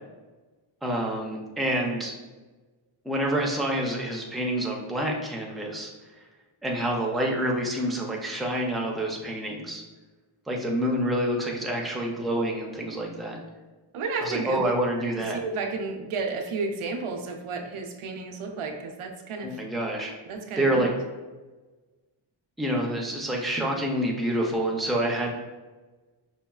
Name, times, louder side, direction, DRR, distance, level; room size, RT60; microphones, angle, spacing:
voice 1, 0.8-2.1 3.0-5.9 6.6-9.8 10.5-13.4 14.2-15.4 19.4-20.1 20.6-20.9 22.6-25.3, right 1 dB, ahead, -1 dB, 0.3 m, -27 dB
voice 2, 13.9-14.6 15.3-19.6 20.3-20.9, right 4 dB, 85° right, 4 dB, 0.6 m, -32 dB
5.4 x 2.3 x 2.3 m, 1.2 s
wide cardioid pair, 155°, 49 cm